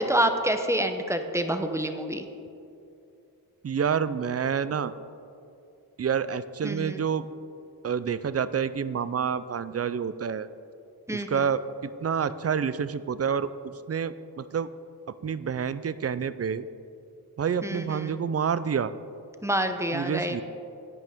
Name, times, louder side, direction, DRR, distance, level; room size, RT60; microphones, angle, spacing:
voice 1, 0.0-2.3 6.6-7.0 11.1-11.5 17.6-18.2 19.4-20.4, right 1 dB, 5° right, 7 dB, 0.8 m, -27 dB
voice 2, 3.6-4.9 6.0-7.3 7.8-10.5 11.1-11.6 12.0-14.7 15.1-16.6 17.4-18.9 19.9-20.4, right 7 dB, 40° right, 15 dB, 0.4 m, -28 dB
11.0 x 9.0 x 3.6 m, 2.6 s
cardioid pair, 50°, 40 cm